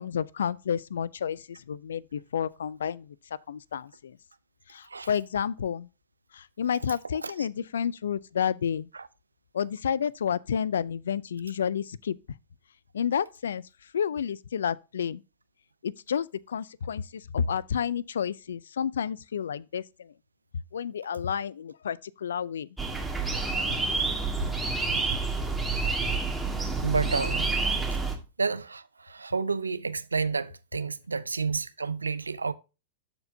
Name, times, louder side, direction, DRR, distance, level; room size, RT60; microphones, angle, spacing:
voice 1, 0.0-3.2 3.5-4.2 4.7-5.9 6.3-8.9 9.5-12.2 12.9-13.6 13.9-15.2 15.8-20.1 20.7-22.7, left 8 dB, 70° left, 0.4 m, -30 dB
sound 1, 22.8-28.2, right 3 dB, 5° right, 1.8 m, -28 dB
voice 2, 26.8-27.5 28.4-32.5, right 4 dB, 85° right, 0.5 m, -30 dB
13.0 x 4.5 x 2.7 m
figure-of-eight pair, 100°, 0 cm